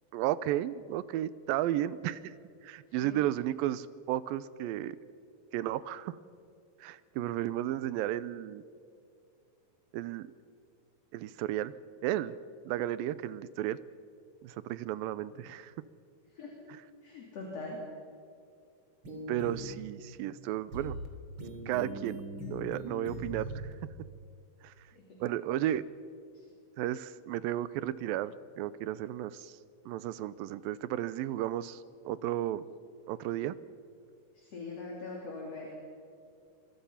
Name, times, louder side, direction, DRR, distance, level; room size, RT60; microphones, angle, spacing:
voice 1, 0.1-2.3 2.6-5.0 5.5-6.2 6.8-8.6 9.9-10.3 11.1-11.7 12.0-12.3 12.7-13.8 14.4-15.7 19.3-21.0 21.7-22.2 22.5-23.6 24.6-24.7 25.2-25.8 26.8-29.5 29.9-32.7 33.1-33.6, right 13 dB, 90° right, 16 dB, 2.5 m, -33 dB
voice 2, 17.0-17.8 24.9-25.0 26.3-26.4 34.4-35.8, left 3 dB, 45° left, -2 dB, 4.1 m, -42 dB
sound 1, 19.0-19.7 20.7-21.1 21.4-23.7, right 1 dB, 35° right, 3.4 m, -40 dB
26.5 x 23.5 x 5.8 m, 2.4 s
omnidirectional pair, 4.0 m